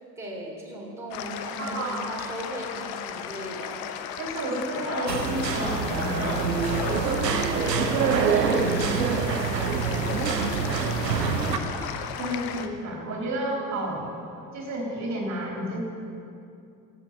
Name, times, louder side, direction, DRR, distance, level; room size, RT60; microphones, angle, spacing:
voice 1, 0.2-3.9 7.2-12.3, right 1 dB, 5° right, -4 dB, 3.0 m, -38 dB
sound 1, 1.1-12.7, left 9 dB, 50° left, 0.9 m, -36 dB
voice 2, 1.6-2.1 4.2-6.5 12.2-14.1 14.5-15.8, right 1 dB, 35° right, -1 dB, 3.3 m, -31 dB
sound 2, 3.1-3.4 3.7-4.1 4.6-7.2 8.5-9.9 10.9-11.0 11.2-11.3 11.8-11.9 13.2-13.3 14.6-14.7, left 1 dB, 30° left, 3.1 m, -37 dB
sound 3, 5.1-11.6, right 5 dB, 80° right, 0.9 m, -25 dB
13.5 x 9.0 x 7.2 m, 2.6 s
figure-of-eight pair, 60°, 48 cm